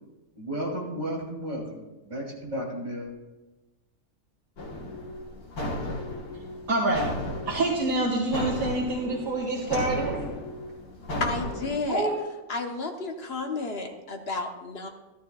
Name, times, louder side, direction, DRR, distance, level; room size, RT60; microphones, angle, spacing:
voice 1, 0.4-3.1, equal, 30° right, -4 dB, 3.4 m, -33 dB
sound 1, 4.6-11.8, left 1 dB, 80° left, 2.0 m, -35 dB
voice 2, 6.7-7.1 7.5-10.2 11.9-12.2, right 2 dB, 65° right, -5 dB, 2.2 m, -26 dB
voice 3, 11.2-12.1 12.5-14.9, left 3 dB, 45° left, 3 dB, 1.2 m, -32 dB
14.5 x 13.5 x 2.4 m, 1.1 s
omnidirectional pair, 1.6 m